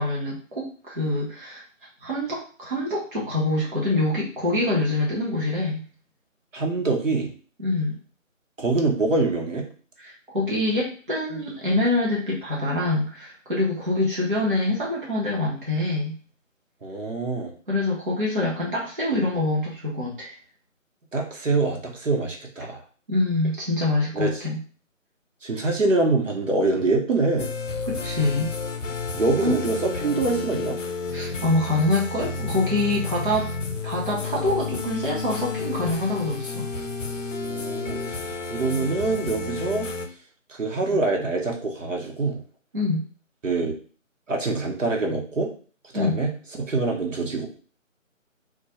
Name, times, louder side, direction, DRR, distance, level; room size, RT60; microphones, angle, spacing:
voice 1, 0.0-1.6 2.0-5.8 7.6-8.0 10.0-16.1 17.7-20.3 23.1-24.6 27.8-28.5 29.4-29.6 31.1-33.5 33.8-36.7 40.9-41.0 42.7-43.0 45.9-46.2, left 2 dB, 40° right, -5 dB, 0.6 m, -25 dB
voice 2, 6.5-7.3 8.6-9.7 16.8-17.5 21.1-22.8 24.1-24.3 25.4-27.5 29.1-29.8 30.0-30.8 37.4-38.2 38.5-39.9 40.5-42.4 43.4-43.7 44.3-45.5 45.9-46.3 46.6-47.5, right 3 dB, 70° right, 1 dB, 0.8 m, -24 dB
sound 1, 27.4-40.1, left 4 dB, 65° left, 0.5 m, -31 dB
2.2 x 2.0 x 2.8 m, 0.40 s
figure-of-eight pair, 160°, 40 cm